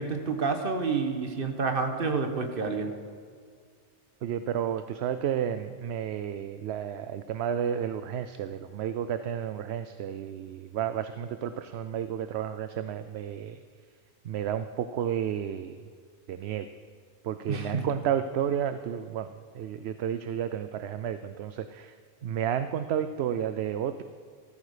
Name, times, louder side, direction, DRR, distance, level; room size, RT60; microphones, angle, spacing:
voice 1, 0.0-2.9 17.5-17.9, right 4 dB, 50° right, 6 dB, 1.4 m, -29 dB
voice 2, 4.2-13.6 14.3-15.8 16.3-16.7 17.2-19.3 19.5-21.9 22.2-24.0, right 9 dB, 70° right, 11 dB, 0.8 m, -31 dB
14.0 x 13.5 x 5.0 m, 2.1 s
omnidirectional pair, 1.2 m